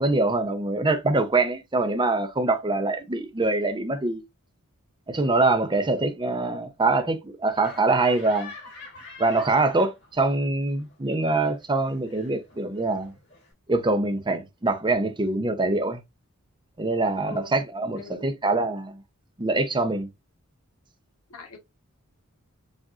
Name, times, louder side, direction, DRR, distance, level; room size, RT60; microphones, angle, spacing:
voice 1, 0.0-4.2 5.1-8.5 9.2-13.1 13.7-16.0 16.8-19.0 19.4-20.1, right 2 dB, 20° right, 0.7 m, -24 dB
Laughter, 7.5-10.3 10.6-13.5, left 2 dB, 50° left, 3.2 m, -45 dB
voice 2, 17.2-17.5 17.9-18.4 21.3-21.6, left 4 dB, 80° left, 1.2 m, -42 dB
7.2 x 2.5 x 2.4 m
head